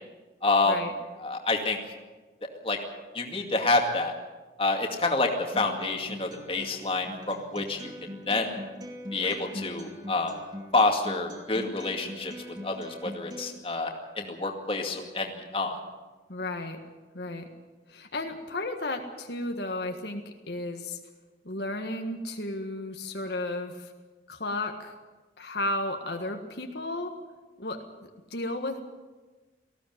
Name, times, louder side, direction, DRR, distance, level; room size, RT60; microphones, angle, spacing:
voice 1, 0.4-0.8 1.2-1.8 2.6-2.8 3.1-4.1 4.6-7.9 8.3-8.5 9.1-10.3 10.7-12.3 12.6-13.9 14.2-15.8, left 3 dB, 30° left, 2 dB, 2.3 m, -27 dB
Acoustic guitar, 5.5-13.5, left 1 dB, 25° right, 2.6 m, -42 dB
voice 2, 16.3-16.8 17.1-17.5 17.9-21.0 21.4-23.9 24.3-24.9 25.4-27.2 27.6-28.8, left 2 dB, 70° left, 4 dB, 1.7 m, -33 dB
19.0 x 15.0 x 9.3 m, 1.3 s
head